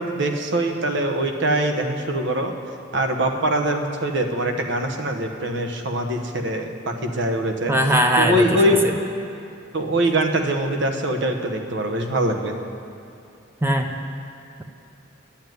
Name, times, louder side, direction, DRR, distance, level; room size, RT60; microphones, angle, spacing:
voice 1, 0.0-2.5 2.9-7.7 8.2-8.8 9.7-12.5, right 1 dB, 65° right, 5 dB, 1.1 m, -23 dB
voice 2, 7.7-8.9 13.6-13.9, equal, 10° right, 4 dB, 0.6 m, -20 dB
10.5 x 7.1 x 9.3 m, 2.6 s
head